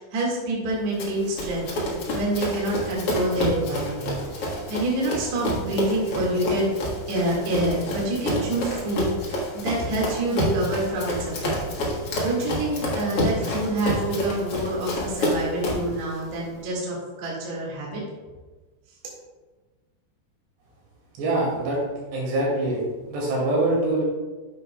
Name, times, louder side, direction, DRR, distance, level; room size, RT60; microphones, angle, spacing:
voice 1, 0.0-6.7 7.1-11.6 11.9-18.0, right 1 dB, 50° right, -4 dB, 2.7 m, -27 dB
Run, 1.0-15.9, equal, 60° left, 1.6 m, -28 dB
voice 2, 21.2-21.8 22.1-22.8 23.1-24.0, right 2 dB, 75° right, -4 dB, 4.4 m, -24 dB
10.5 x 7.7 x 2.3 m, 1.3 s
omnidirectional pair, 5.0 m